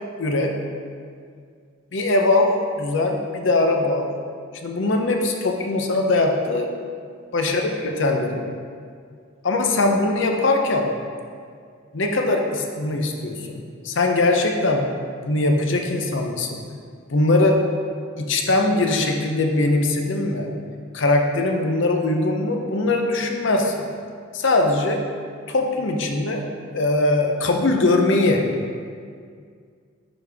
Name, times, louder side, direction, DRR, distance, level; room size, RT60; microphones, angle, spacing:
voice 1, 0.2-0.5 1.9-4.1 4.6-6.7 7.3-8.4 9.4-10.9 11.9-14.9 15.2-16.6 17.1-17.6 18.2-20.5 20.9-23.9 24.3-25.0 25.5-26.4 26.7-28.4, left 2 dB, 70° left, 2 dB, 0.7 m, -21 dB
10.5 x 4.1 x 3.5 m, 2.1 s
head